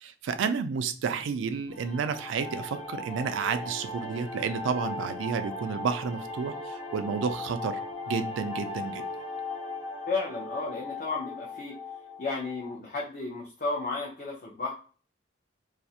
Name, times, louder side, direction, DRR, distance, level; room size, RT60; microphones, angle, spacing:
voice 1, 0.0-7.8 8.1-9.0, right 5 dB, 90° right, 10 dB, 0.3 m, -31 dB
sound 1, 1.7-12.7, left 2 dB, 85° left, 1.0 m, -38 dB
voice 2, 10.1-11.8 12.2-14.7, left 3 dB, 45° left, -2 dB, 0.5 m, -33 dB
2.4 x 2.0 x 2.6 m, 0.38 s
head